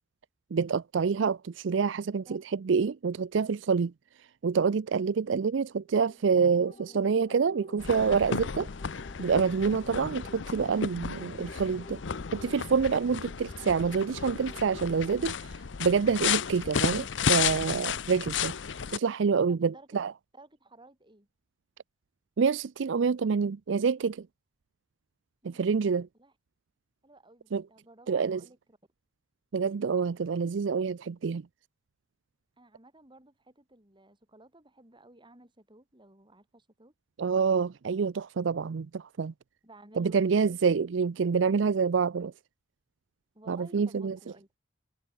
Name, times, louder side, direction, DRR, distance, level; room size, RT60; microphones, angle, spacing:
voice 1, 0.5-3.9 4.4-8.7 9.2-12.0 12.3-15.3 15.8-18.5 18.9-20.1 22.4-24.3 25.4-26.1 27.5-27.6 28.1-28.4 29.5-31.4 37.2-39.3 40.0-42.3 43.5-44.2, right 5 dB, 70° right, 0.5 m, -27 dB
sound 1, 5.9-15.3, left 1 dB, 30° left, 6.5 m, -51 dB
sound 2, 7.8-19.0, left 7 dB, 70° left, 0.7 m, -33 dB
voice 2, 19.5-20.0 20.3-21.3 25.4-25.8 26.2-26.3 27.0-28.8 32.6-36.9 37.9-38.0 39.6-40.2 40.5-40.6 43.3-44.5, right 2 dB, 25° right, 7.5 m, -55 dB
head